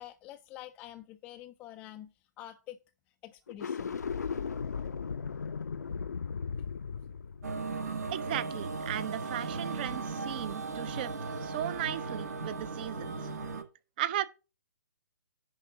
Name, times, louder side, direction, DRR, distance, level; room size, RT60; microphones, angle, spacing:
voice 1, 0.0-2.8 3.2-4.0, left 13 dB, 15° left, 0.4 m, -47 dB
sound 1, 3.5-8.8, left 6 dB, 65° left, 0.6 m, -37 dB
sound 2, 7.4-13.6, right 4 dB, 60° right, 1.5 m, -37 dB
voice 2, 8.1-11.1 11.4-13.2 14.0-14.2, right 12 dB, 30° right, 0.6 m, -36 dB
10.5 x 3.6 x 6.8 m
figure-of-eight pair, 130°, 10 cm